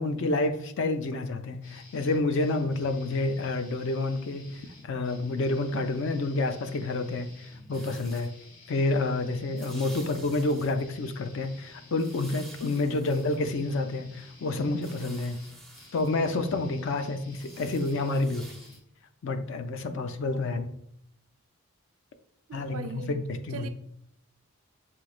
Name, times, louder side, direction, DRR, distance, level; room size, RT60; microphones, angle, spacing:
voice 1, 0.0-4.6 4.8-8.3 8.7-15.4 15.9-18.5 19.2-20.8 22.5-23.7, left 2 dB, 60° left, 0.4 m, -29 dB
sound 1, 1.6-18.8, left 2 dB, 90° left, 1.2 m, -52 dB
sound 2, 7.7-8.3 9.6-10.8 12.0-13.4 14.7-16.1 17.3-18.8, right 1 dB, ahead, 0.5 m, -50 dB
voice 2, 12.8-13.2 16.7-16.9 20.2-20.6 22.5-23.1 23.5-23.7, right 5 dB, 80° right, 0.4 m, -41 dB
6.9 x 3.1 x 2.4 m
head